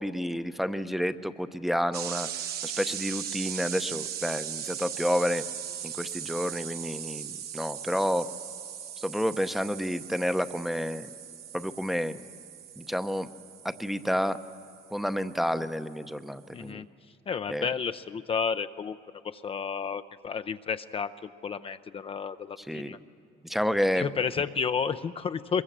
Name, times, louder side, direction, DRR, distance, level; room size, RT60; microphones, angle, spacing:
voice 1, 0.0-2.3 2.6-5.4 5.8-8.3 9.0-11.1 11.5-12.2 12.8-13.3 13.6-14.4 14.9-16.9 17.5-17.7 22.6-23.0 23.4-24.1, equal, ahead, 10 dB, 0.7 m, -30 dB
sound 1, 1.9-15.5, right 9 dB, 70° right, 1.3 m, -39 dB
voice 2, 16.5-16.8 17.3-19.0 19.2-21.1 21.4-23.0 23.9-25.6, left 6 dB, 35° left, 10 dB, 0.5 m, -31 dB
22.5 x 22.0 x 7.4 m, 2.5 s
cardioid pair, 110°, 17 cm